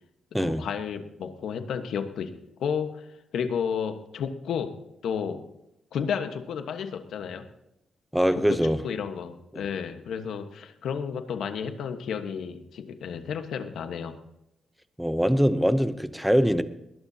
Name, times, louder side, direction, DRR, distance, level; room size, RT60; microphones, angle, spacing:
voice 1, 0.4-2.3 2.6-3.0 3.3-4.7 5.0-5.4 5.9-7.5 8.3-14.2, left 7 dB, 75° left, 7 dB, 1.3 m, -32 dB
voice 2, 8.1-8.8 9.5-9.6 15.0-16.6, equal, ahead, 11 dB, 0.7 m, -23 dB
20.5 x 19.5 x 2.8 m, 0.87 s
wide cardioid pair, 165°, 0 cm